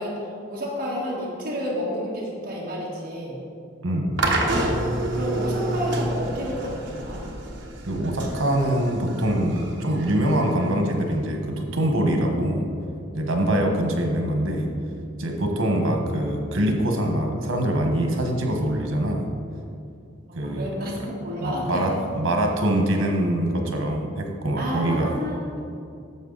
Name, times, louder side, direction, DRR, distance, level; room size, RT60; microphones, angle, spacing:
voice 1, 0.0-3.4 5.1-7.3 13.5-13.7 20.3-21.0 21.2-21.9 24.6-25.6, equal, 45° right, -6 dB, 1.8 m, -30 dB
voice 2, 3.8-4.3 7.8-12.7 13.1-14.7 15.2-19.3 20.3-20.7 21.4-25.1, right 1 dB, 90° right, 3 dB, 1.4 m, -24 dB
sound 1, 4.2-11.3, right 1 dB, 60° right, 1.2 m, -28 dB
11.0 x 7.2 x 4.0 m, 2.4 s
head